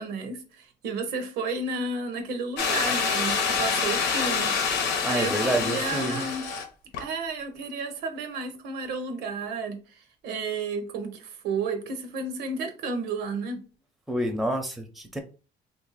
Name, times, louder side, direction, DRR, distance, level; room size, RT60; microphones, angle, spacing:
voice 1, 0.0-4.6 4.8-6.4 7.0-13.6, right 4 dB, 85° right, 0.8 m, -32 dB
sound 1, 2.6-6.6 6.9-7.0, left 5 dB, 90° left, 0.8 m, -26 dB
voice 2, 5.0-6.2 14.1-15.2, right 1 dB, ahead, 0.6 m, -28 dB
2.8 x 2.6 x 3.9 m
cardioid pair, 110°, 17 cm